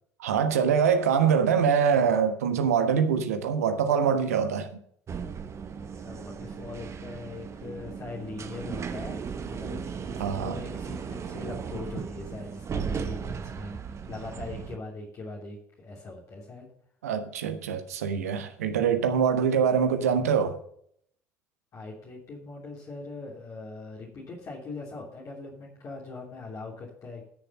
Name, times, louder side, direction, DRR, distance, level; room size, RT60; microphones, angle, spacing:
voice 1, 0.2-4.7 10.2-10.6 17.0-20.6, right 7 dB, 75° right, 1.2 m, -24 dB
sound 1, 5.1-14.8, right 6 dB, 35° right, 1.1 m, -36 dB
voice 2, 5.9-16.7 21.7-27.3, left 3 dB, 40° left, 3.0 m, -41 dB
12.5 x 6.8 x 5.5 m
figure-of-eight pair, 60°, 8 cm